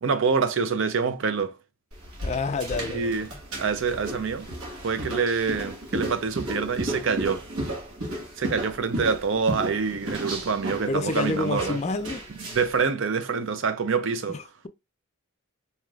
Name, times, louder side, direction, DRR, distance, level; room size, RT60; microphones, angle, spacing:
voice 1, 0.0-1.5 2.9-3.3 3.6-4.5 4.8-7.4 8.4-11.8 12.5-14.4, right 5 dB, 60° right, 0.5 m, -26 dB
sound 1, 1.9-12.8, right 1 dB, 85° right, 1.5 m, -34 dB
voice 2, 2.2-3.1 10.9-12.2 14.3-14.7, left 3 dB, 30° left, 0.3 m, -28 dB
4.6 x 2.9 x 2.4 m
head